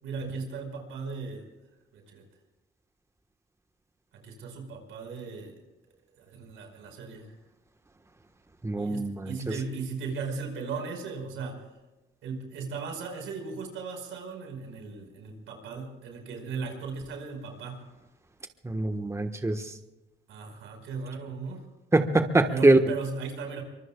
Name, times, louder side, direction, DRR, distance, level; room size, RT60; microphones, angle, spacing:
voice 1, 0.0-1.5 1.9-2.2 4.1-5.5 6.1-7.3 8.8-11.6 12.2-17.8 20.3-21.7 22.5-23.6, right 4 dB, 85° right, 3 dB, 5.0 m, -37 dB
voice 2, 8.6-9.3 18.6-19.6 21.9-22.8, right 2 dB, 15° right, 6 dB, 1.4 m, -23 dB
24.5 x 23.5 x 2.4 m, 1.1 s
cardioid pair, 90°, 20 cm